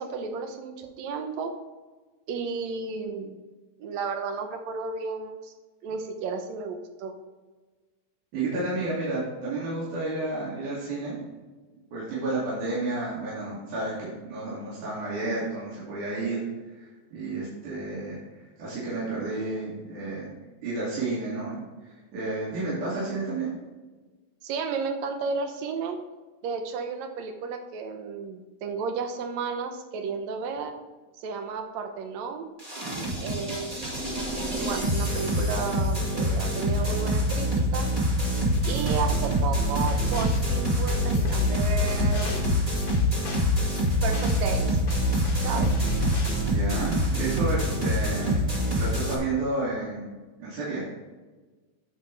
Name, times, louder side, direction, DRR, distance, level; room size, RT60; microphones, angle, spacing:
voice 1, 0.0-1.5 2.3-3.4 3.8-5.5 5.8-7.1 24.4-26.0 26.4-30.7 31.2-32.5 33.2-33.9 34.5-37.9 38.7-42.6 44.0-44.8 45.4-45.8, right 5 dB, 75° right, 6 dB, 1.6 m, -33 dB
voice 2, 8.3-11.2 11.9-16.4 16.7-18.2 18.6-23.5 45.5-45.8 46.4-48.4 48.8-50.9, right 2 dB, 60° right, -9 dB, 3.9 m, -31 dB
sound 1, 32.6-49.2, equal, 30° right, 0.7 m, -26 dB
sound 2, 38.4-46.4, left 3 dB, 70° left, 0.8 m, -29 dB
9.6 x 8.1 x 3.4 m, 1.3 s
omnidirectional pair, 4.2 m